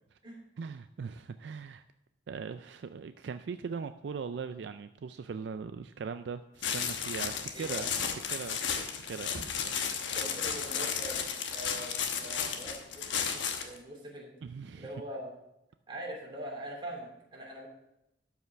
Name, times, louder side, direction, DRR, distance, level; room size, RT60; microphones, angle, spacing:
voice 1, 0.6-1.8 2.3-7.8 8.3-9.8 14.4-14.9, right 5 dB, 70° right, 10 dB, 0.4 m, -40 dB
sound 1, 6.6-13.8, left 7 dB, 85° left, 1.1 m, -33 dB
voice 2, 7.5-7.8 10.1-14.3 14.7-15.3 15.9-17.7, right 1 dB, 25° right, -1 dB, 2.7 m, -43 dB
12.5 x 5.7 x 5.8 m, 0.84 s
head